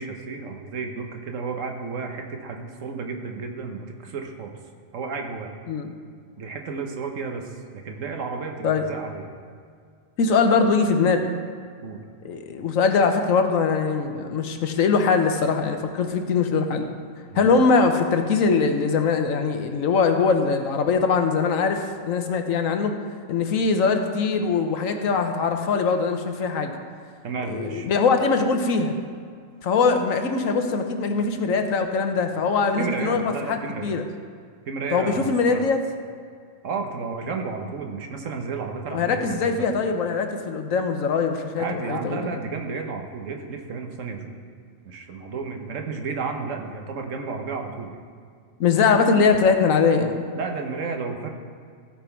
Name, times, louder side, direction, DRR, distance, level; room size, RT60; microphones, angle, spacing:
voice 1, 0.0-4.5 4.9-5.5 6.4-9.3 11.8-12.0 17.3-17.5 27.2-27.9 32.8-34.0 34.7-35.6 36.6-39.7 41.6-44.4 44.8-47.9 50.3-51.3, right 4 dB, 75° right, 3 dB, 1.4 m, -32 dB
voice 2, 10.2-11.3 12.2-16.8 17.3-22.9 23.3-26.7 27.4-29.0 29.6-34.0 34.9-35.8 38.9-42.2 48.6-50.2, left 5 dB, 85° left, 6 dB, 1.3 m, -22 dB
15.5 x 5.7 x 4.5 m, 2.1 s
omnidirectional pair, 1.3 m